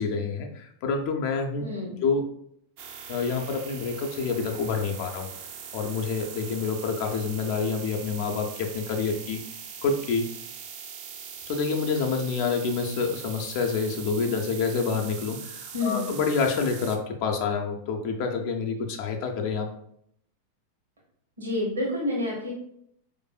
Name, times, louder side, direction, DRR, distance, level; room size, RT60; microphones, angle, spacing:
voice 1, 0.0-1.6 2.0-2.3 3.1-5.3 5.7-9.4 9.8-10.3 11.5-19.7, left 5 dB, 45° left, 2 dB, 0.4 m, -27 dB
voice 2, 1.6-2.0 15.7-16.1 21.4-22.5, left 2 dB, 70° right, -3 dB, 1.0 m, -28 dB
sound 1, 2.8-17.0, right 7 dB, 45° right, 0.4 m, -41 dB
4.7 x 2.5 x 2.2 m, 0.70 s
figure-of-eight pair, 90°, 0 cm